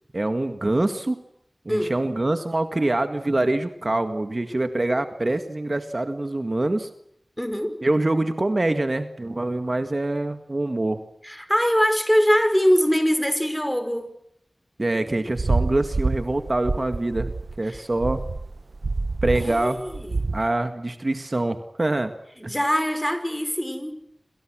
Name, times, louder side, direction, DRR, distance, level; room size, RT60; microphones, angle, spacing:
voice 1, 0.1-1.2 1.7-6.9 7.8-11.0 14.8-18.3 19.2-19.9 20.3-22.1 22.4-22.5, right 2 dB, 45° right, 8 dB, 1.9 m, -25 dB
voice 2, 7.4-7.8 11.2-14.1 17.7-17.8 19.4-20.2 22.5-24.0, equal, 5° left, 9 dB, 5.5 m, -23 dB
sound 1, 15.4-20.5, right 3 dB, 75° right, 1.1 m, -27 dB
28.0 x 27.0 x 6.4 m, 0.74 s
wide cardioid pair, 60°, 0 cm